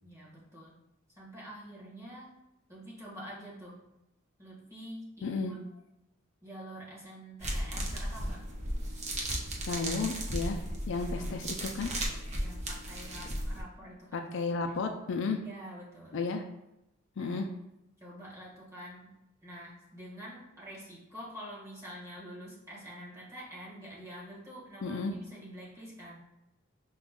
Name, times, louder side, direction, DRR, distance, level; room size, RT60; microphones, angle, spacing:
voice 1, 0.0-0.8 1.2-2.3 2.7-3.8 4.4-5.6 6.4-8.4 11.0-11.2 12.4-14.2 15.3-16.2 17.2-17.4 18.0-19.1 19.4-26.2, equal, 15° right, -7 dB, 1.4 m, -47 dB
voice 2, 5.2-5.5 9.7-10.6 10.9-11.9 14.1-15.4 16.1-16.4 17.2-17.5 24.8-25.1, left 4 dB, 65° left, 5 dB, 0.4 m, -33 dB
sound 1, 7.4-13.6, right 1 dB, 35° right, 0.7 m, -35 dB
5.0 x 2.3 x 3.6 m, 0.90 s
head